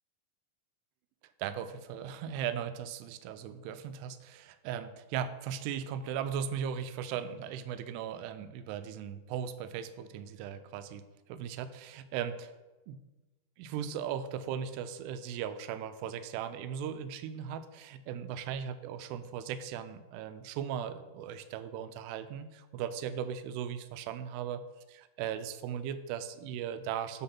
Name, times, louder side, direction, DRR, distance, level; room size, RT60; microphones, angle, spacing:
voice 1, 1.4-11.0 11.3-12.5 12.9-13.0 13.6-24.6 24.9-27.2, right 8 dB, 85° right, 11 dB, 2.6 m, -38 dB
9.6 x 3.6 x 5.8 m, 1.1 s
omnidirectional pair, 4.8 m